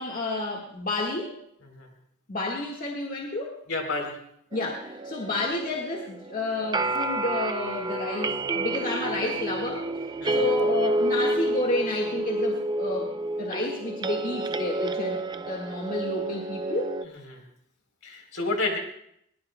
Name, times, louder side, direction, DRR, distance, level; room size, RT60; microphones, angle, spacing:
voice 1, 0.0-1.4 2.3-3.6 4.5-9.9 10.3-13.1 13.4-16.9, left 2 dB, 40° left, -1 dB, 1.7 m, -30 dB
voice 2, 3.7-4.2 10.2-10.5 17.0-17.4 18.0-18.8, left 3 dB, 65° left, 3 dB, 3.7 m, -31 dB
sound 1, 4.5-17.0, right 1 dB, 20° right, 0.5 m, -29 dB
21.5 x 19.5 x 2.2 m, 0.70 s
head